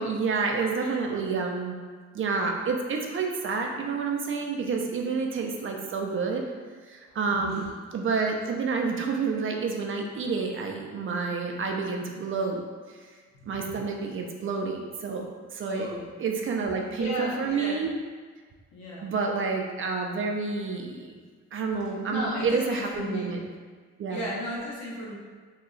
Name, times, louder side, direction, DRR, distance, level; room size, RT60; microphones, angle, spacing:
voice 1, 0.0-1.8 2.1-6.4 6.9-7.7 7.9-12.6 12.9-13.1 13.5-15.9 16.2-17.9 19.0-21.1 21.5-23.5 24.0-24.2, right 4 dB, 45° right, 1 dB, 0.5 m, -29 dB
voice 2, 0.7-1.1 7.3-7.7 13.5-13.6 15.6-16.1 17.0-17.8 18.7-19.1 22.1-23.4 24.1-25.1, equal, 65° left, -5 dB, 1.1 m, -35 dB
2.8 x 2.3 x 3.8 m, 1.5 s
cardioid pair, 90°, 30 cm